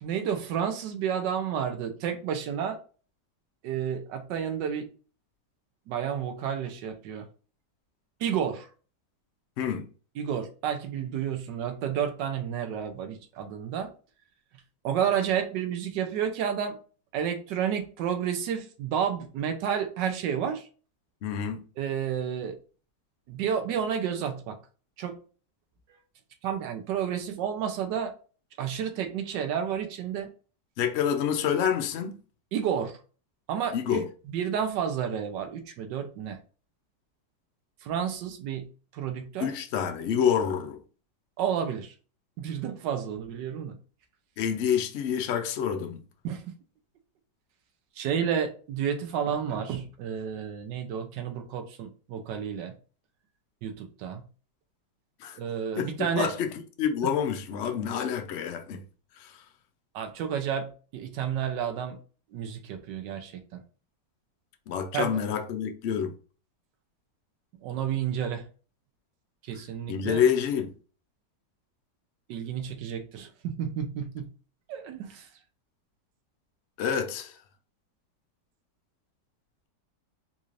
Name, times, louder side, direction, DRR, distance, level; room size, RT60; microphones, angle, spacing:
voice 1, 0.0-2.8 3.6-4.9 5.9-7.3 8.2-8.7 10.2-13.9 14.8-16.8 17.1-20.7 21.8-22.6 23.3-24.6 25.0-25.2 26.4-28.1 28.6-30.3 32.5-33.0 33.5-36.4 37.8-38.7 38.9-39.5 41.4-41.9 42.4-43.8 46.2-46.4 48.0-52.7 53.6-54.2 55.4-56.3 59.9-62.0 62.3-63.6 64.9-65.2 67.6-68.5 69.5-70.2 72.3-74.3 74.7-75.3, right 8 dB, 80° right, 1.3 m, -31 dB
voice 2, 21.2-21.6 30.8-32.1 33.7-34.1 39.4-40.8 44.4-46.0 55.2-55.4 55.8-55.9 56.1-56.5 56.8-58.8 59.2-59.3 64.7-66.1 69.9-70.7 76.8-77.3, left 8 dB, 85° left, 0.6 m, -27 dB
4.0 x 2.5 x 3.1 m
omnidirectional pair, 1.9 m